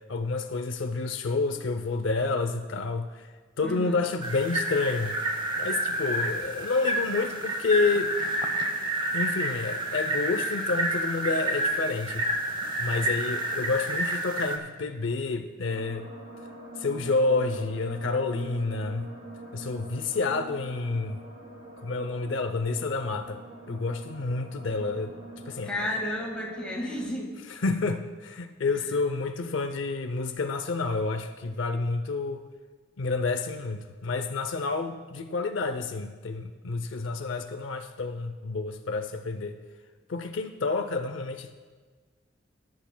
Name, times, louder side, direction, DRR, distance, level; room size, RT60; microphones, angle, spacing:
voice 1, 0.1-3.3 3.6-5.1 5.6-8.1 9.1-16.1 16.8-19.0 19.5-21.2 21.8-23.4 23.7-25.1 25.5-25.9 27.5-32.4 33.0-39.6 40.1-41.5, left 3 dB, 65° left, 8 dB, 0.5 m, -29 dB
voice 2, 3.6-4.0 25.6-27.4 28.7-28.8, left 1 dB, 5° left, -2 dB, 1.7 m, -32 dB
sound 1, 4.2-14.6, right 1 dB, 25° right, 0.9 m, -29 dB
sound 2, 15.6-27.1, right 1 dB, 55° right, 3.4 m, -45 dB
20.5 x 10.5 x 2.2 m, 1.4 s
head